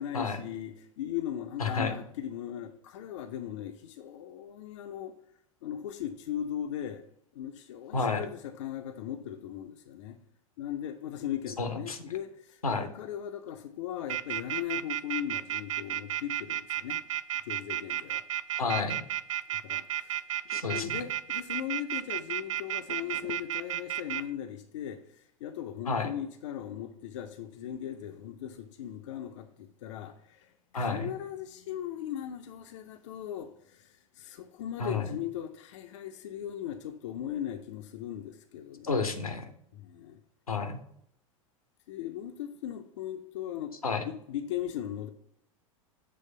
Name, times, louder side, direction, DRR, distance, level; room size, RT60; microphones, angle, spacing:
voice 1, 0.0-5.1 5.6-7.0 7.3-10.2 10.6-17.0 17.4-18.2 19.6-20.2 20.5-38.9 39.7-40.2 41.9-43.7 44.0-45.1, left 10 dB, 60° left, 0.5 m, -38 dB
voice 2, 1.6-1.9 7.9-8.3 11.6-12.0 12.6-12.9 18.6-19.0 20.5-21.1 25.9-26.1 30.7-31.1 34.8-35.1 38.8-39.5 40.5-40.8 43.8-44.1, left 4 dB, 85° left, 0.8 m, -30 dB
sound 1, 14.1-24.2, right 12 dB, 60° right, 0.4 m, -32 dB
7.5 x 3.1 x 5.4 m
figure-of-eight pair, 90°, 18 cm